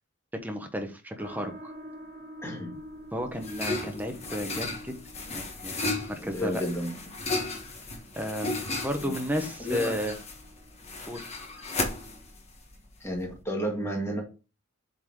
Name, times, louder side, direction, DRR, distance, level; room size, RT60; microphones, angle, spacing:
voice 1, 0.3-1.7 3.1-5.0 5.3-6.6 8.2-8.5 8.8-10.1 11.1-11.3, equal, 10° right, 5 dB, 1.1 m, -33 dB
sound 1, 1.2-12.3, equal, 50° right, 1.7 m, -49 dB
voice 2, 2.4-2.7 6.2-6.9 9.0-9.1 9.6-10.0 13.0-14.2, equal, 10° left, -1 dB, 2.1 m, -31 dB
sound 2, 2.8-13.4, left 2 dB, 30° left, 1.5 m, -35 dB
7.4 x 4.1 x 4.9 m, 0.33 s
head